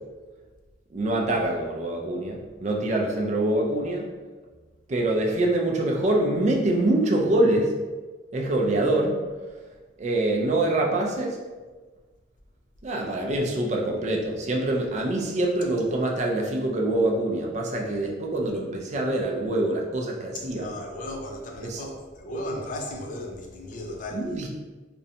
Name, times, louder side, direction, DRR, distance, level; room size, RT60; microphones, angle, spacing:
voice 1, 0.9-4.0 4.9-7.7 8.3-9.2 10.0-11.4 12.8-20.7 21.6-21.8 24.1-24.5, right 1 dB, 40° right, 0 dB, 0.4 m, -25 dB
voice 2, 20.3-24.3, left 1 dB, 45° left, 1 dB, 0.4 m, -35 dB
2.5 x 2.1 x 2.7 m, 1.3 s
head